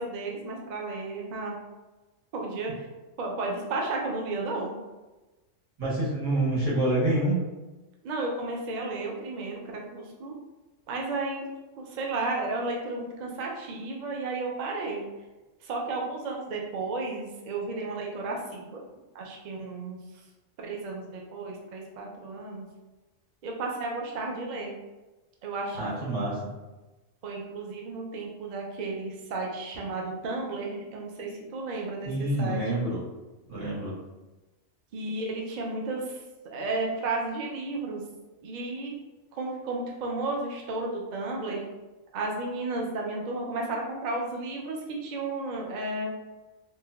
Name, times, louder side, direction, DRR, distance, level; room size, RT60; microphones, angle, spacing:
voice 1, 0.0-1.5 2.3-2.9 3.2-4.7 8.0-10.3 10.9-11.5 11.8-15.0 15.6-18.8 19.1-20.0 20.6-22.7 23.4-24.8 25.4-26.3 27.2-32.1 32.4-32.6 34.9-36.2 36.5-38.0 38.4-38.9 39.3-41.7 42.1-46.1, right 3 dB, 60° right, -1 dB, 0.4 m, -33 dB
voice 2, 5.8-7.4 25.7-26.5 32.0-33.0 33.5-33.9, right 1 dB, 80° right, -9 dB, 1.5 m, -27 dB
3.1 x 2.1 x 2.3 m, 1.1 s
omnidirectional pair, 1.3 m